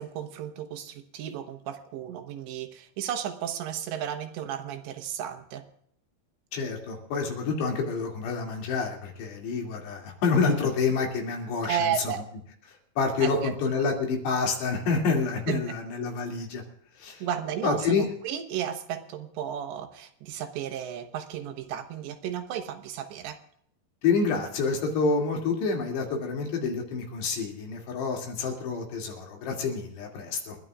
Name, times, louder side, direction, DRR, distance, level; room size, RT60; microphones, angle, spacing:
voice 1, 0.0-5.7 11.7-12.2 13.2-13.9 15.5-15.6 17.2-23.4, right 9 dB, 85° right, 7 dB, 3.4 m, -33 dB
voice 2, 6.5-12.1 12.7-16.6 17.0-17.2 17.6-18.1 24.0-30.6, left 4 dB, 75° left, 1 dB, 4.7 m, -28 dB
29.5 x 11.0 x 2.4 m, 0.67 s
omnidirectional pair, 4.9 m